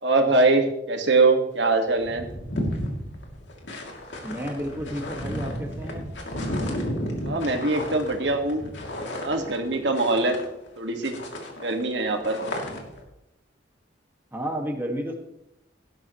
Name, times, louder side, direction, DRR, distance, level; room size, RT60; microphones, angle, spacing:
voice 1, 0.0-2.3 7.2-8.6 9.2-10.4 10.8-11.2 11.6-12.4, right 3 dB, 75° right, 4 dB, 1.9 m, -22 dB
sound 1, 1.5-1.6 1.9-10.8 11.0-13.0, equal, 80° left, 2.9 m, -33 dB
voice 2, 4.2-6.1 14.3-15.1, equal, 10° right, 1 dB, 1.9 m, -31 dB
17.5 x 12.0 x 3.2 m, 0.82 s
head